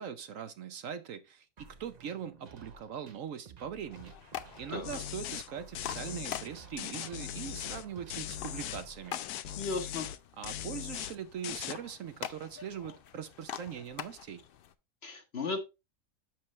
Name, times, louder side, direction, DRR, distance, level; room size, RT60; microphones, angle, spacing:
voice 1, 0.0-4.1 4.6-9.2 10.4-14.4, right 8 dB, 65° right, 1.0 m, -41 dB
sound 1, 1.6-9.6, right 5 dB, 40° right, 0.6 m, -54 dB
sound 2, 3.9-14.7, left 9 dB, 70° left, 0.5 m, -46 dB
sound 3, 4.8-5.5 5.7-6.5 6.8-8.8 9.1-10.2 10.4-11.2 11.4-11.7, left 12 dB, 90° left, 1.1 m, -39 dB
voice 2, 9.6-10.1 15.0-15.6, left 3 dB, 45° left, 1.2 m, -35 dB
7.5 x 6.0 x 3.1 m
omnidirectional pair, 1.6 m